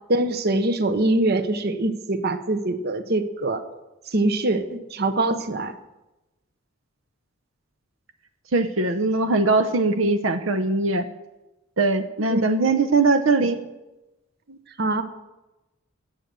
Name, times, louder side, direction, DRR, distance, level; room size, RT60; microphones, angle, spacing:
voice 1, 0.1-3.6 4.1-5.7 12.3-12.4 14.5-15.0, right 2 dB, 55° right, 10 dB, 1.0 m, -23 dB
voice 2, 8.5-11.1 11.8-13.6, right 3 dB, 80° right, 9 dB, 0.8 m, -21 dB
17.0 x 7.6 x 6.8 m, 1.0 s
head